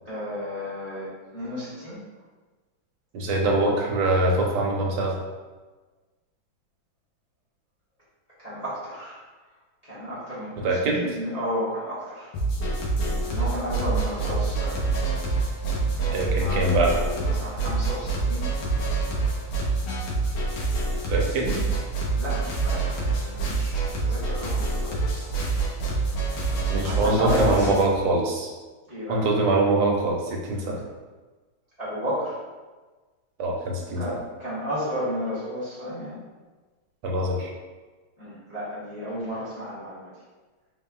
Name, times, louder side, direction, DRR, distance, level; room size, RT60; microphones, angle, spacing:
voice 1, 0.0-2.0 8.4-9.2 9.8-12.3 13.2-14.8 15.9-18.5 22.1-25.4 26.8-27.8 28.9-29.2 30.6-30.8 31.8-32.4 34.0-36.2 38.2-40.1, equal, 35° left, -11 dB, 0.6 m, -32 dB
voice 2, 3.1-5.1 10.6-11.0 16.1-16.9 21.1-21.6 26.7-28.5 29.1-30.8 33.4-34.2 37.0-37.5, right 2 dB, 90° right, -1 dB, 1.6 m, -23 dB
sound 1, 12.3-27.8, right 3 dB, 80° left, 1.8 m, -26 dB
4.2 x 3.7 x 2.3 m, 1.3 s
omnidirectional pair, 2.3 m